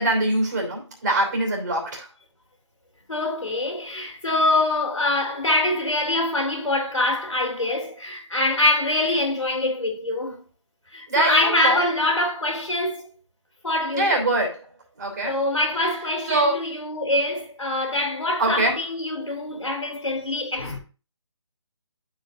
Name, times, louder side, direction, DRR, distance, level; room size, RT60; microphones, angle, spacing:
voice 1, 0.0-2.1 11.1-11.8 13.9-14.6 15.0-15.4 16.3-16.5 18.4-18.7, right 2 dB, 35° right, 3.0 m, -23 dB
voice 2, 3.1-10.4 10.9-13.1 13.6-14.2 15.2-20.8, left 2 dB, 85° left, 3.1 m, -24 dB
12.5 x 5.2 x 2.4 m
figure-of-eight pair, 160°, 16 cm